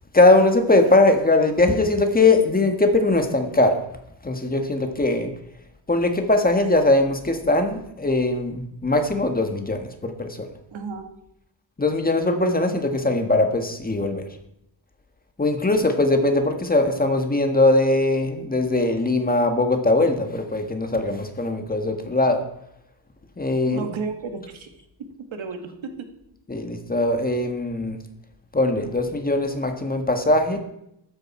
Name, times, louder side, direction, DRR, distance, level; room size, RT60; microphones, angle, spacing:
voice 1, 0.1-3.8 4.2-5.3 5.9-10.5 11.8-14.2 15.4-22.4 23.4-23.9 26.5-28.0 28.5-30.6, left 2 dB, 20° left, 5 dB, 1.5 m, -20 dB
voice 2, 10.7-11.1 23.6-24.7 25.3-26.1, right 4 dB, 80° right, 6 dB, 2.1 m, -32 dB
14.5 x 12.5 x 4.4 m, 0.80 s
wide cardioid pair, 145°, 46 cm